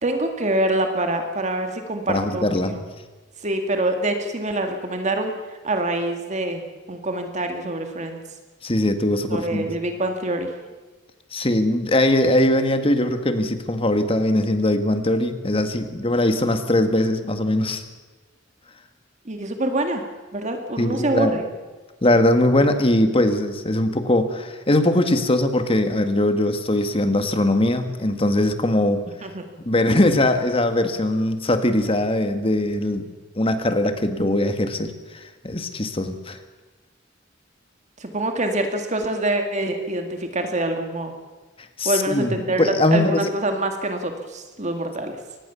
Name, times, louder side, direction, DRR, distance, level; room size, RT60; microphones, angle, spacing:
voice 1, 0.0-2.5 2.7-2.8 3.4-6.6 6.9-8.2 9.3-10.5 19.3-20.0 20.3-21.4 29.2-29.4 38.0-41.1 41.9-45.1, right 1 dB, 40° right, 5 dB, 2.1 m, -25 dB
voice 2, 2.1-2.8 8.6-9.7 11.3-17.8 20.8-21.4 22.0-29.0 29.7-33.1 33.4-36.4 41.8-43.3, left 1 dB, 30° left, 8 dB, 1.9 m, -21 dB
24.0 x 19.5 x 7.1 m, 1.2 s
head